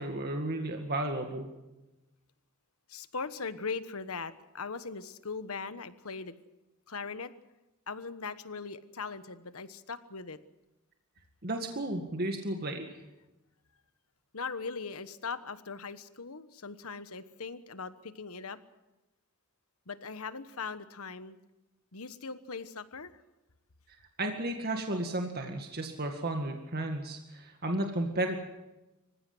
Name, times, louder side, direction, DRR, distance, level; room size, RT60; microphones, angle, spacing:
voice 1, 0.0-1.5 11.4-12.9 24.2-28.4, right 1 dB, 45° right, 4 dB, 2.0 m, -33 dB
voice 2, 2.9-6.3 6.9-7.3 7.9-10.4 14.3-18.6 19.9-21.4 21.9-23.2, left 4 dB, 70° left, 12 dB, 1.3 m, -40 dB
26.0 x 15.5 x 7.9 m, 0.99 s
head